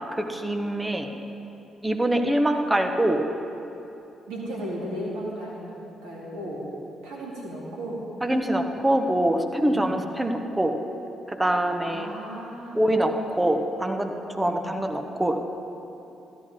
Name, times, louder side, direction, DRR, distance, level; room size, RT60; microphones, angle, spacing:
voice 1, 0.1-1.1 1.8-3.2 8.2-10.7 11.3-12.1 12.7-15.4, right 1 dB, 15° right, 5 dB, 1.1 m, -24 dB
voice 2, 4.3-5.7 6.0-6.7 7.0-8.0 9.7-9.9 11.8-12.8 14.4-14.7, equal, 80° right, -4 dB, 2.4 m, -35 dB
13.0 x 11.0 x 3.7 m, 2.8 s
hypercardioid pair, 50°, 0 cm